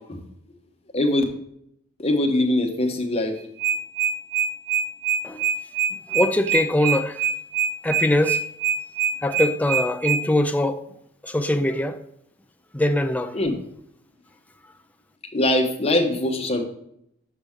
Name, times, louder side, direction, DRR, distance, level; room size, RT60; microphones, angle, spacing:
voice 1, 0.9-1.2 2.0-3.3 13.3-13.5 15.3-16.6, left 1 dB, 30° left, 1.1 m, -22 dB
sound 1, 3.4-10.2, right 8 dB, 65° right, 1.4 m, -23 dB
voice 2, 6.1-7.2 7.8-8.4 9.2-10.8 11.2-12.0 12.7-13.4, left 1 dB, 5° left, 0.4 m, -22 dB
6.7 x 5.9 x 3.6 m
head